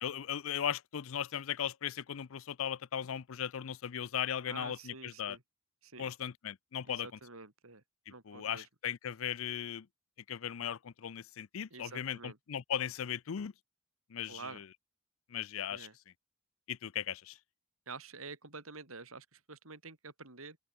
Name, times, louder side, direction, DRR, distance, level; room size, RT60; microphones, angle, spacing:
voice 1, 0.0-5.4 6.0-7.1 8.3-9.9 10.3-13.5 14.1-14.7 15.3-15.9 16.7-17.4, left 9 dB, 75° left, 0.5 m, -37 dB
voice 2, 4.5-5.4 5.8-6.1 6.9-7.8 8.1-8.7 11.7-12.4 14.3-14.6 15.7-16.0 17.9-20.6, right 4 dB, 85° right, 4.1 m, -48 dB
open air
head